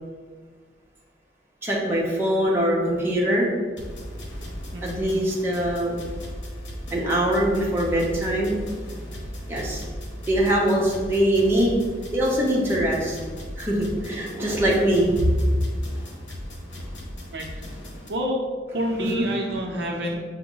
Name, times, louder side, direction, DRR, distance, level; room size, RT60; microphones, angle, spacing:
voice 1, 1.6-3.5 4.8-6.0 6.9-8.6 9.5-9.8 10.3-11.8 12.1-13.2 13.6-15.4 19.0-19.3 20.1-20.2, right 1 dB, 15° right, -4 dB, 0.7 m, -22 dB
sound 1, 3.8-18.1, equal, 85° left, 0.9 m, -37 dB
voice 2, 17.3-17.6 18.1-18.4 18.7-20.2, equal, 70° right, 1 dB, 0.6 m, -28 dB
5.9 x 2.1 x 3.8 m, 1.5 s
head